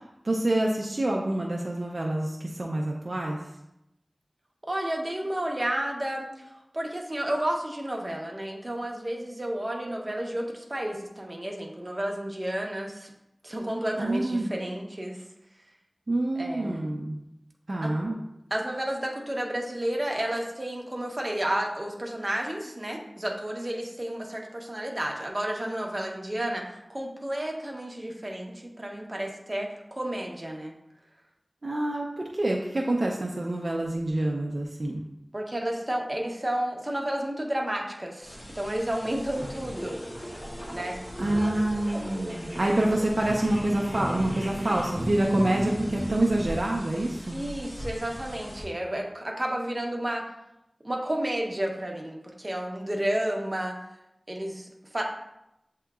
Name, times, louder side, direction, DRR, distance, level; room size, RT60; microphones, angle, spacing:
voice 1, 0.2-3.4 14.0-14.5 16.1-17.2 17.7-18.2 31.6-35.0 41.2-47.4, right 1 dB, 60° right, -1 dB, 0.5 m, -27 dB
voice 2, 4.7-6.4 6.7-13.1 13.4-15.2 16.4-17.0 17.8-18.2 18.5-30.7 35.3-40.0 40.7-41.0 47.3-50.2 50.8-53.8 54.3-55.0, right 1 dB, 35° right, 0 dB, 0.8 m, -31 dB
sound 1, 38.2-48.6, equal, 60° left, 1.0 m, -42 dB
sound 2, 39.3-46.4, equal, 10° left, 1.4 m, -36 dB
7.7 x 2.8 x 2.4 m, 0.86 s
wide cardioid pair, 55°, 0 cm